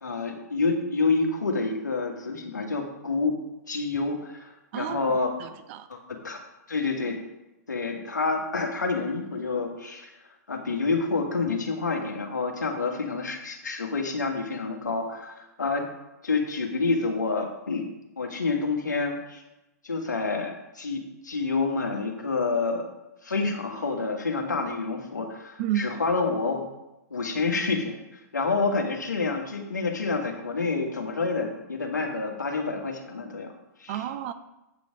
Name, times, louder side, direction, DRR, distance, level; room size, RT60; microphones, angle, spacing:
voice 1, 0.0-3.4 3.7-5.3 5.9-6.4 6.7-7.2 7.7-10.1 10.5-15.9 16.2-17.9 18.2-19.4 19.8-22.9 23.2-26.6 27.1-33.5 33.8-34.0, left 4 dB, 85° left, 2 dB, 1.8 m, -28 dB
voice 2, 4.7-5.9 25.6-25.9 33.9-34.3, right 11 dB, 45° right, 12 dB, 0.6 m, -31 dB
8.8 x 5.3 x 5.2 m, 0.96 s
hypercardioid pair, 120°, 9 cm